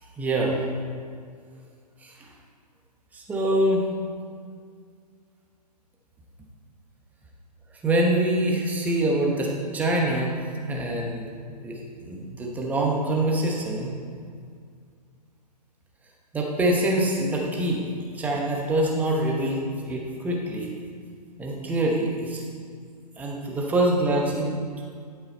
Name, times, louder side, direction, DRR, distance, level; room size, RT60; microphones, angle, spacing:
voice 1, 0.2-0.6 2.0-2.1 3.1-3.8 7.8-10.3 10.7-11.2 11.5-13.9 16.3-17.9 18.1-20.7 21.4-22.4 23.2-24.5, right 1 dB, 5° right, -1 dB, 1.0 m, -25 dB
11.5 x 5.7 x 4.1 m, 2.1 s
figure-of-eight pair, 125°, 21 cm